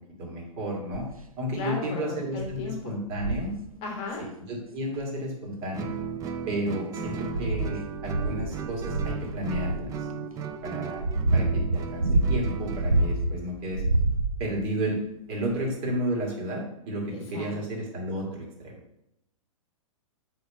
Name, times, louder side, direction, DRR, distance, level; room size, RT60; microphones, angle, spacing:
voice 1, 0.2-1.1 1.4-3.5 4.5-5.9 6.5-9.9 10.6-11.0 11.3-13.8 14.4-15.0 15.3-18.7, right 1 dB, 35° right, -2 dB, 2.5 m, -32 dB
sound 1, 0.9-1.2 1.8-1.9 2.4-2.6 3.1-3.5 4.9-5.0 5.8-6.5 7.0-9.9 10.6-13.4 13.7-14.6 15.5-15.6, right 2 dB, 90° right, 0.7 m, -27 dB
voice 2, 1.6-2.9 3.8-4.3 17.1-17.6, left 3 dB, 30° left, 2 dB, 1.3 m, -36 dB
Guitar, 5.7-13.2, right 5 dB, 20° right, 0.5 m, -36 dB
6.8 x 3.6 x 5.5 m, 0.80 s
figure-of-eight pair, 110°, 18 cm